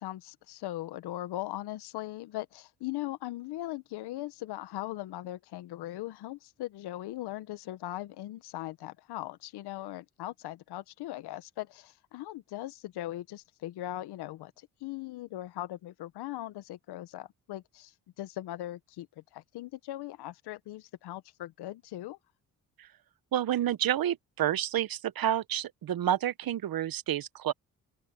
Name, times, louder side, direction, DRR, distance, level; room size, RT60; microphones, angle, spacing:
voice 1, 0.0-22.2, left 15 dB, 80° left, 1.4 m, -39 dB
voice 2, 23.3-27.5, right 11 dB, 65° right, 1.1 m, -29 dB
open air
supercardioid pair, 55°, 39 cm